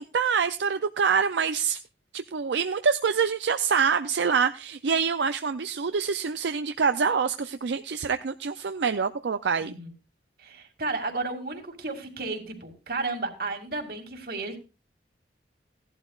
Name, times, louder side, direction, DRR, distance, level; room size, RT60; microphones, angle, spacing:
voice 1, 0.0-1.8 2.1-9.7, right 6 dB, 80° right, 10 dB, 0.5 m, -26 dB
voice 2, 9.6-9.9 10.4-14.6, right 3 dB, 55° right, 4 dB, 2.4 m, -33 dB
17.0 x 11.5 x 2.4 m, 0.30 s
head